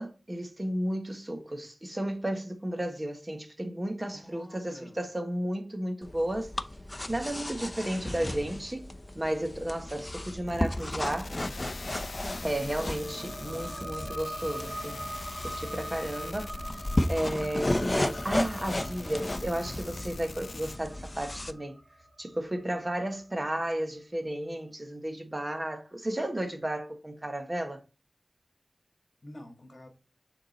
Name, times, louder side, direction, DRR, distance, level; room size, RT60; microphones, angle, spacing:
voice 1, 0.0-6.5 7.1-11.4 12.4-15.0 15.4-21.8 22.2-27.8, right 1 dB, 30° right, 1.3 m, -33 dB
voice 2, 4.1-5.0 12.9-13.9 29.2-29.9, left 1 dB, 50° left, 1.6 m, -49 dB
sound 1, 6.0-21.5, left 1 dB, 30° left, 0.6 m, -34 dB
sound 2, 10.5-20.8, left 3 dB, 75° left, 0.3 m, -44 dB
sound 3, 12.2-23.4, right 1 dB, 55° right, 1.5 m, -43 dB
6.7 x 3.8 x 4.1 m
wide cardioid pair, 55°, 0 cm